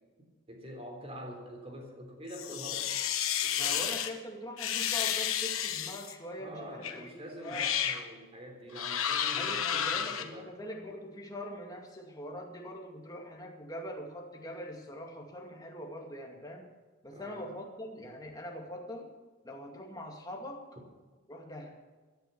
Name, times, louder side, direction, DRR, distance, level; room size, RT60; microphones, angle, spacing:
voice 1, 0.5-2.9 3.4-4.0 6.4-10.5 17.1-17.5, equal, 30° right, 2 dB, 3.7 m, -45 dB
sound 1, 2.3-4.1 4.6-6.1 6.8-7.0 7.4-8.0 8.7-10.2, left 9 dB, 90° left, 1.4 m, -31 dB
voice 2, 3.6-7.7 9.4-16.6 17.0-19.1 19.4-20.7 21.3-21.8, equal, 20° left, 1 dB, 2.3 m, -43 dB
17.0 x 10.5 x 7.0 m, 1.3 s
head